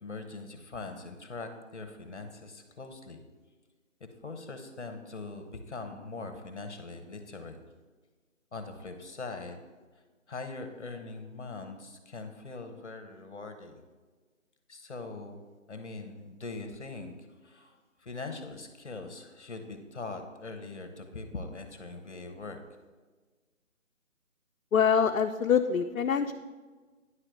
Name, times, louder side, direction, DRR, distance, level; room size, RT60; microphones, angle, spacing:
voice 1, 0.0-3.2 4.2-7.6 8.5-9.6 9.9-13.8 14.7-15.4 15.7-22.6, left 3 dB, 55° left, 6 dB, 1.1 m, -42 dB
voice 2, 24.7-26.3, left 7 dB, 90° left, 6 dB, 0.5 m, -25 dB
9.7 x 3.3 x 6.3 m, 1.4 s
figure-of-eight pair, 175°, 40 cm